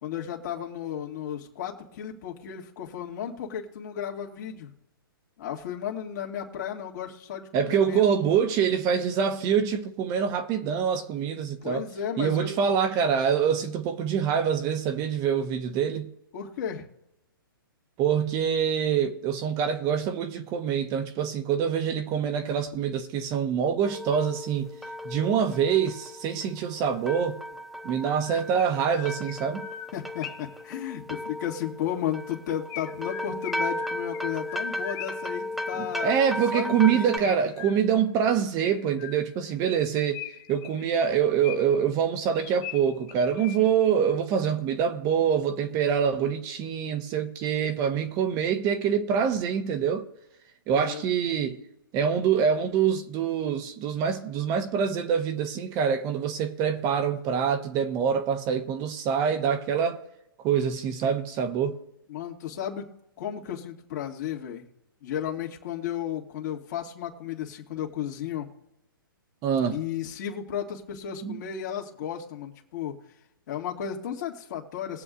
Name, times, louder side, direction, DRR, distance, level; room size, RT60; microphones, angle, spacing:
voice 1, 0.0-4.7 5.4-8.1 11.6-12.5 16.3-16.9 29.9-36.2 36.5-37.3 50.7-51.0 62.1-64.6 65.0-68.5 69.7-73.0 73.5-75.0, left 9 dB, 50° left, 2.1 m, -34 dB
voice 2, 7.5-11.8 12.2-16.1 18.0-24.7 25.0-27.4 27.8-29.7 35.8-40.2 40.5-50.0 50.7-51.6 51.9-60.0 60.4-61.8 69.4-69.8 71.2-71.4, right 7 dB, 30° right, 1.1 m, -25 dB
sound 1, 23.8-37.2, left 1 dB, ahead, 0.5 m, -36 dB
Chirp tweet, 28.0-30.6 32.7-35.4 36.5-38.1 38.6-39.5 40.1-41.9 42.3-43.9, left 13 dB, 30° left, 0.9 m, -42 dB
21.5 x 7.9 x 2.6 m
hypercardioid pair, 130°, 12 cm